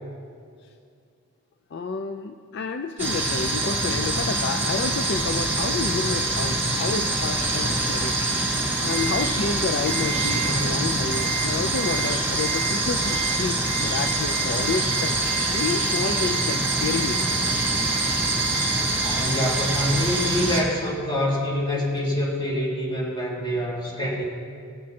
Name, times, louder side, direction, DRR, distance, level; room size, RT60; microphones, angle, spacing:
voice 1, 1.7-8.1 8.8-15.2 15.5-17.3 17.6-17.8, left 4 dB, 50° left, 6 dB, 0.4 m, -30 dB
sound 1, 3.0-20.6, right 2 dB, 10° right, 1.8 m, -25 dB
Ringtone, 8.9-9.2 9.9-10.5 11.1-11.5 11.8-12.1 12.4-12.7 13.0-13.3 13.6-20.3, right 8 dB, 50° right, 0.7 m, -33 dB
voice 2, 19.0-24.2, equal, 20° left, -5 dB, 2.6 m, -26 dB
18.0 x 7.3 x 4.3 m, 2.3 s
head